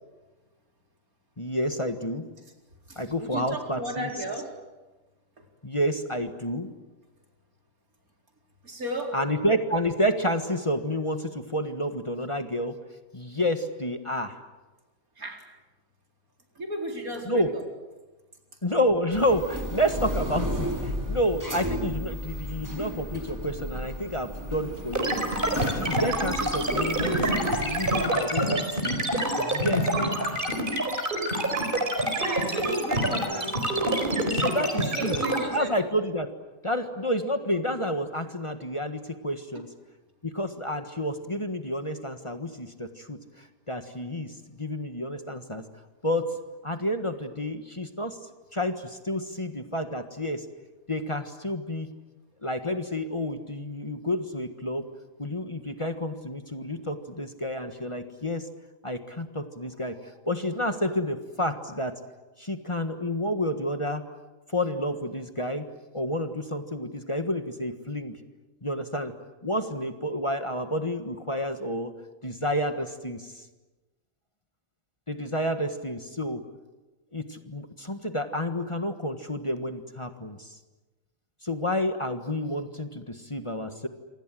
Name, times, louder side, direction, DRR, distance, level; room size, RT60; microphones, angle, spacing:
voice 1, 1.4-2.3 2.9-4.1 5.6-6.7 9.1-12.7 13.1-14.4 17.3-17.5 18.6-25.2 25.5-29.0 29.4-30.4 34.3-35.1 35.5-36.3 36.6-39.7 40.2-45.6 46.0-46.3 46.6-48.2 48.5-50.4 50.9-51.9 52.4-54.9 55.2-58.5 58.8-61.9 62.4-64.0 64.5-65.7 65.9-68.2 68.6-69.1 69.4-71.9 72.2-73.4 75.1-76.4 77.1-80.6 81.4-83.9, equal, 20° left, 7 dB, 1.6 m, -30 dB
voice 2, 2.9-4.5 5.4-5.5 8.6-9.2 15.2-15.4 16.5-17.6 32.1-33.6 34.7-35.8, right 1 dB, 85° right, 2 dB, 4.8 m, -34 dB
sound 1, 19.1-28.1, equal, 10° right, 4.8 m, -34 dB
sound 2, 24.9-35.4, right 1 dB, 35° right, 4.7 m, -26 dB
27.5 x 26.0 x 7.7 m, 1.2 s
omnidirectional pair, 1.5 m